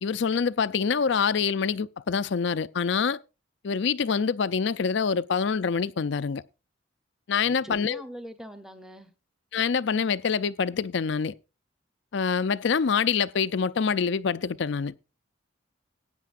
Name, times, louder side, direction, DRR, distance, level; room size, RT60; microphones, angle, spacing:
voice 1, 0.0-3.2 3.6-6.4 7.3-8.0 9.5-11.3 12.1-14.9, left 6 dB, 60° left, 0.4 m, -26 dB
voice 2, 7.6-9.1, equal, ahead, 0.8 m, -42 dB
18.0 x 9.2 x 2.5 m
head